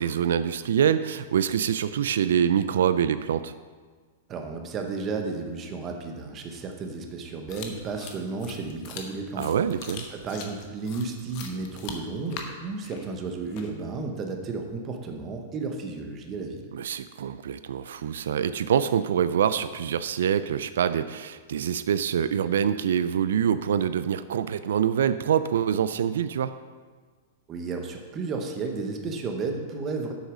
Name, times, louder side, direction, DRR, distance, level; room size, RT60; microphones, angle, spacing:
voice 1, 0.0-3.5 9.4-10.0 16.7-26.5, right 8 dB, 85° right, 13 dB, 0.4 m, -25 dB
voice 2, 4.3-9.4 10.1-16.7 27.5-30.1, right 4 dB, 20° right, 3 dB, 0.9 m, -33 dB
sound 1, 7.5-14.0, left 5 dB, 35° left, 1.0 m, -41 dB
8.0 x 6.6 x 6.2 m, 1.5 s
supercardioid pair, 175°, 0 cm